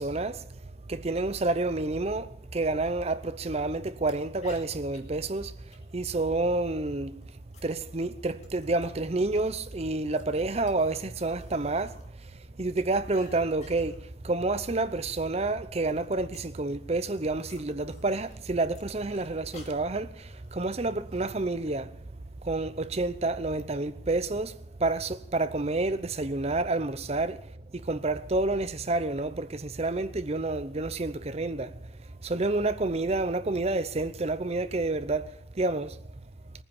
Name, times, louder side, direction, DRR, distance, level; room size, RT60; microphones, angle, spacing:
voice 1, 0.0-7.2 7.6-21.9 22.4-36.0, right 2 dB, 35° right, 0.7 m, -29 dB
sound 1, 4.1-4.2 4.4-5.0 5.7-6.2 7.0-9.4 9.8-12.1 12.3-14.0 14.4-14.6 14.9-15.4 15.6-18.4 18.7-21.3, left 3 dB, 40° left, 2.4 m, -55 dB
18.5 x 10.0 x 7.1 m
head